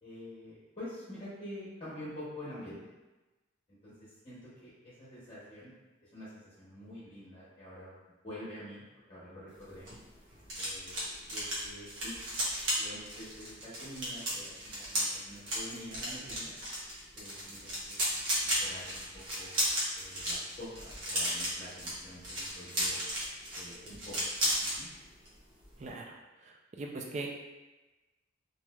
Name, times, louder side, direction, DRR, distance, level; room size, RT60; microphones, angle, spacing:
voice 1, 0.0-2.8 3.7-7.9 8.2-9.9 10.6-12.2 12.8-16.6 17.1-18.1 18.4-19.5 19.9-23.0 23.5-24.2 24.6-24.9, left 1 dB, 30° left, -12 dB, 0.8 m, -47 dB
sound 1, 9.6-24.8 25.1-25.4 25.6-25.9, equal, 85° right, 1.0 m, -34 dB
voice 2, 25.8-26.1 26.8-27.3, right 2 dB, 35° right, 1 dB, 0.3 m, -39 dB
3.1 x 2.7 x 2.2 m, 1.1 s
head